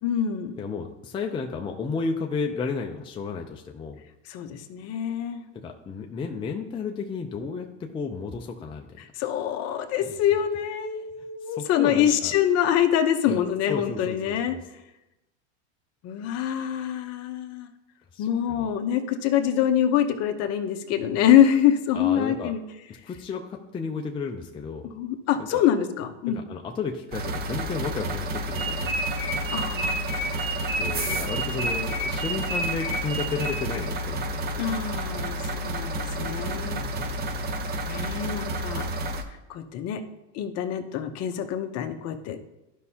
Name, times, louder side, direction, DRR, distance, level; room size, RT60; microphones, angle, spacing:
voice 1, 0.0-0.5 4.3-5.4 9.0-14.5 16.0-17.7 18.2-22.6 24.8-26.4 29.5-30.1 34.6-36.8 37.8-38.8 39.5-40.0 40.3-42.4, left 10 dB, 40° left, 6 dB, 0.9 m, -25 dB
voice 2, 0.6-4.0 5.5-8.9 11.6-12.3 13.3-13.4 13.7-14.6 18.1-18.7 21.9-22.5 23.0-23.4 23.7-24.9 25.4-25.6 26.3-28.9 30.7-34.6 36.6-37.2, left 5 dB, 15° left, 1 dB, 0.5 m, -33 dB
sound 1, 27.1-39.2, right 1 dB, 25° right, 0.7 m, -31 dB
sound 2, 28.5-33.9, right 1 dB, 60° right, 2.2 m, -31 dB
12.5 x 5.4 x 2.8 m, 0.95 s
supercardioid pair, 125°, 37 cm